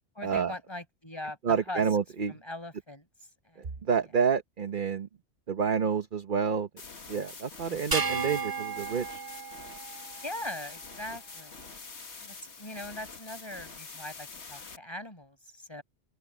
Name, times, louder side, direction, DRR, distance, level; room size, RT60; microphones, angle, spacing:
voice 1, 0.2-1.8 2.3-3.1 3.4-3.8 4.1-4.2 7.7-8.1 10.2-11.6 12.2-15.8, left 1 dB, 20° left, 5.7 m, -41 dB
voice 2, 1.4-2.4 3.6-5.1 5.5-6.7 7.1-9.2, right 6 dB, 45° right, 1.1 m, -29 dB
sound 1, 6.8-14.8, left 4 dB, 65° left, 2.1 m, -46 dB
sound 2, 7.9-10.5, right 5 dB, 30° right, 0.5 m, -33 dB
open air
omnidirectional pair, 1.2 m